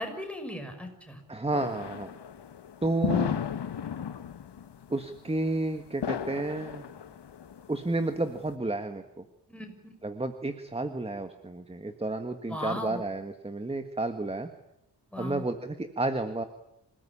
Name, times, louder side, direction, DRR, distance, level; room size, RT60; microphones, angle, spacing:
voice 1, 0.0-1.2 9.5-10.0 12.5-13.0 15.1-15.4, left 1 dB, 5° left, 3 dB, 6.0 m, -37 dB
voice 2, 1.3-2.1 2.8-3.4 4.9-6.9 7.7-9.2 10.0-14.5 15.2-16.4, right 2 dB, 15° right, 8 dB, 1.6 m, -31 dB
sound 1, 1.5-8.5, left 8 dB, 75° left, 1.3 m, -35 dB
27.0 x 19.0 x 9.9 m, 0.80 s
wide cardioid pair, 135°, 41 cm